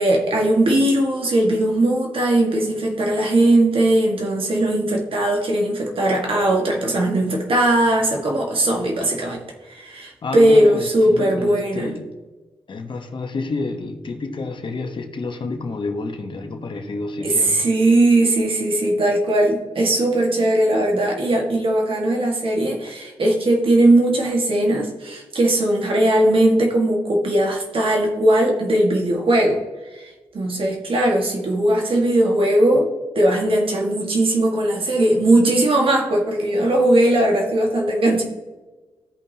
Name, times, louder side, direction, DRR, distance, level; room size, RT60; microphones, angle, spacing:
voice 1, 0.0-11.9 17.2-29.6 29.9-32.9 33.2-38.2, right 1 dB, 60° right, 0 dB, 1.8 m, -19 dB
voice 2, 10.2-12.1 12.7-17.7 21.0-21.1, left 3 dB, 50° left, 5 dB, 1.1 m, -29 dB
14.5 x 5.3 x 2.9 m, 1.2 s
cardioid pair, 65°, 10 cm